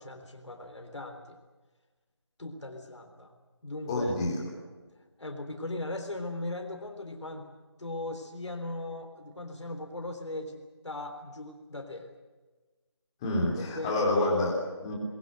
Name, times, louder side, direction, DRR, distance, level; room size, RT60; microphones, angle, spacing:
voice 1, 0.0-1.4 2.4-3.3 3.6-4.1 5.2-7.5 7.8-12.1 13.6-14.0, left 2 dB, 80° left, 5 dB, 3.7 m, -38 dB
voice 2, 3.9-4.4 13.2-15.0, left 2 dB, 10° left, -2 dB, 3.4 m, -28 dB
22.0 x 22.0 x 7.9 m, 1.3 s
figure-of-eight pair, 175°, 15 cm